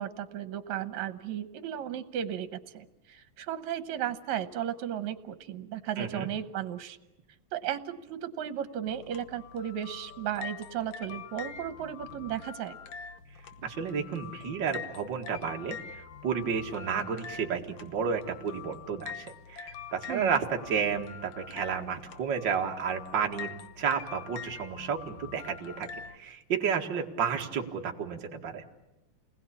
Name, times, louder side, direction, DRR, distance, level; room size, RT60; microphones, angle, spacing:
voice 1, 0.0-7.0 7.5-12.8 20.1-20.3, right 10 dB, 80° right, 11 dB, 2.4 m, -35 dB
voice 2, 6.0-6.3 13.6-28.7, right 6 dB, 40° right, 2 dB, 2.3 m, -32 dB
sound 1, 8.9-26.2, left 7 dB, 65° left, 1.9 m, -45 dB
29.0 x 20.5 x 8.6 m, 0.99 s
omnidirectional pair, 3.3 m